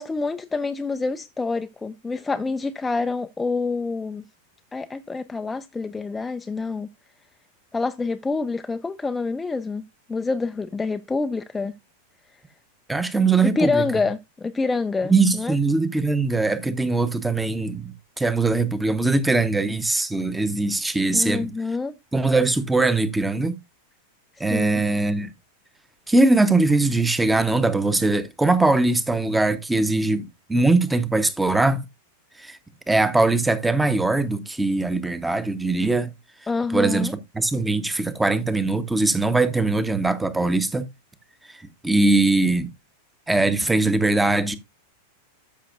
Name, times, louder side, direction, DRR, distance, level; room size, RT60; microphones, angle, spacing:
voice 1, 0.0-4.2 4.7-6.9 7.7-9.8 10.1-11.7 12.3-12.4 13.4-15.6 21.1-21.9 24.3-24.8 36.5-37.1, left 3 dB, 10° left, 0.4 m, -27 dB
voice 2, 12.9-13.8 15.0-21.5 22.1-23.6 24.4-25.3 26.1-31.8 32.4-32.6 32.9-36.1 36.7-40.9 41.5-42.7 43.3-44.6, right 3 dB, 5° right, 0.9 m, -21 dB
13.0 x 5.8 x 2.4 m
figure-of-eight pair, 90°, 0 cm